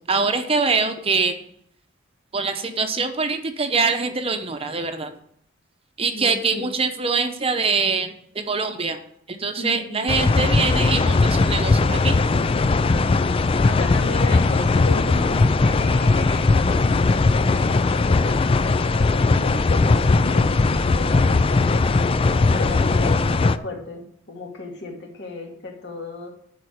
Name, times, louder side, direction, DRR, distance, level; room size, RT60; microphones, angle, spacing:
voice 1, 0.0-1.4 2.3-5.1 6.0-9.0 9.3-12.1, right 4 dB, 30° right, 7 dB, 0.8 m, -24 dB
voice 2, 6.1-6.6 9.6-10.0 12.7-13.2 13.6-26.3, left 2 dB, 60° left, 0 dB, 2.4 m, -35 dB
sound 1, 10.1-23.6, left 3 dB, 30° left, 0.4 m, -19 dB
11.0 x 4.6 x 7.9 m, 0.67 s
head